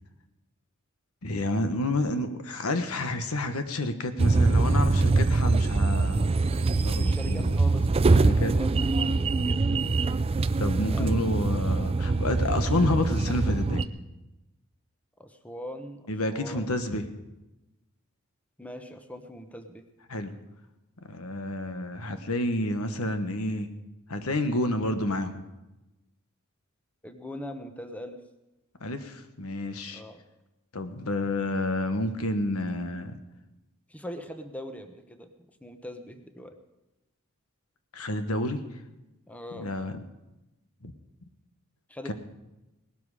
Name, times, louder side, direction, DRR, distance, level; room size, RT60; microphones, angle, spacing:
voice 1, 1.2-7.5 8.2-8.5 10.6-13.8 16.1-17.1 20.1-20.3 21.0-23.7 24.1-25.4 28.8-30.0 30.7-33.2 37.9-38.6 39.5-40.0 40.8-40.9 42.1-42.2, left 1 dB, 85° left, 8 dB, 1.3 m, -29 dB
sound 1, 4.2-13.8, right 3 dB, 25° right, 0.4 m, -24 dB
voice 2, 6.9-9.9 10.9-11.1 15.2-16.0 16.3-16.7 18.6-19.8 27.0-28.2 29.9-30.2 33.9-35.3 35.6-36.6 39.3-39.7 41.9-42.1, equal, 5° left, 7 dB, 1.0 m, -41 dB
18.5 x 12.5 x 4.9 m, 1.0 s
head